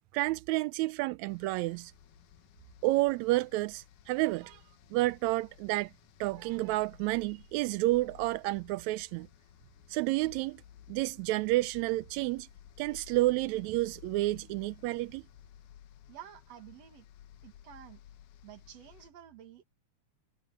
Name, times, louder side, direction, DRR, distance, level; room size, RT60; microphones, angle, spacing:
voice 1, 0.1-1.9 2.8-4.6 4.9-5.9 6.2-9.3 9.9-10.6 10.9-12.5 12.8-15.2, right 19 dB, 80° right, 1.7 m, -30 dB
sound 1, 1.3-19.1, left 10 dB, 90° left, 2.6 m, -56 dB
voice 2, 16.1-17.1 17.4-18.0 18.4-19.6, right 11 dB, 60° right, 2.6 m, -50 dB
omnidirectional pair, 3.6 m